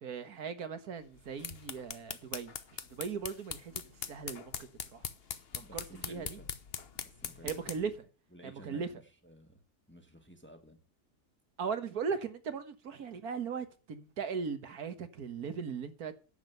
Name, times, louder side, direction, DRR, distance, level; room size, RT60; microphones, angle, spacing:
voice 1, 0.0-2.5 2.9-5.0 5.7-6.4 7.4-7.9 8.4-8.9 11.6-16.1, right 6 dB, 65° right, 1.9 m, -38 dB
sound 1, 1.1-7.9, left 7 dB, 45° left, 1.0 m, -42 dB
voice 2, 5.6-6.5 7.0-7.6 8.3-9.6 9.9-10.8, right 1 dB, 5° left, 1.6 m, -54 dB
10.5 x 7.5 x 7.9 m
omnidirectional pair, 1.7 m